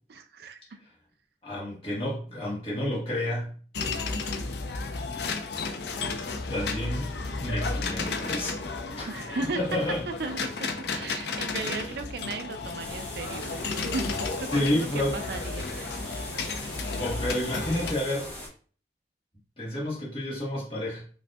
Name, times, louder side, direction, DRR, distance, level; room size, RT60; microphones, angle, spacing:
voice 1, 0.1-0.8 9.1-9.6 10.2-10.5 10.9-14.1 14.4-16.0, right 3 dB, 60° right, 8 dB, 0.4 m, -36 dB
voice 2, 1.4-3.6 6.5-7.1 7.4-9.1 9.5-10.0 11.6-11.9 14.5-15.2 17.0-18.3 19.6-21.0, left 1 dB, 30° left, -5 dB, 1.3 m, -30 dB
sound 1, 3.7-17.9, left 3 dB, 65° left, 0.5 m, -33 dB
sound 2, 12.8-18.5, left 1 dB, 10° left, 0.9 m, -41 dB
5.1 x 2.6 x 2.3 m, 0.42 s
head